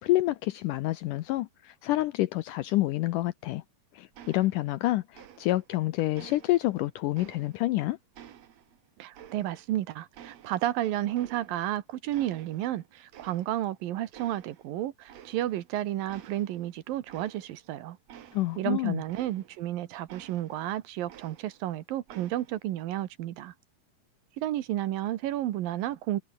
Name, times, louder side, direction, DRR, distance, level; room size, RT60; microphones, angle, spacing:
voice 1, 0.0-3.6 3.9-8.0 18.3-19.0, left 17 dB, 80° left, 1.9 m, -28 dB
sound 1, 4.1-4.9 5.1-5.8 6.1-7.8 8.1-9.8 10.1-11.8 12.1-12.8 13.1-13.8 14.1-14.7 15.1-15.7 16.1-19.7 20.1-21.7 22.1-22.7, right 10 dB, 55° right, 2.3 m, -52 dB
voice 2, 9.0-18.0 18.6-23.5 24.4-26.2, right 13 dB, 75° right, 2.8 m, -32 dB
omnidirectional pair, 4.3 m